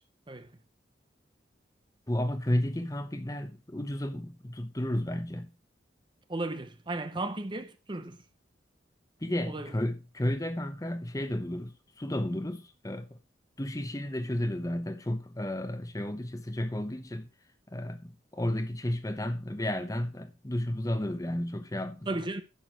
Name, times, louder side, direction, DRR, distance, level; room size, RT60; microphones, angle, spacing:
voice 1, 2.1-5.5 9.2-13.2 13.6-17.3 17.7-22.2, left 1 dB, 20° left, 0.9 m, -32 dB
voice 2, 6.3-8.2 9.5-9.7 22.1-22.4, right 2 dB, 25° right, 0.7 m, -35 dB
10.0 x 7.0 x 4.6 m
head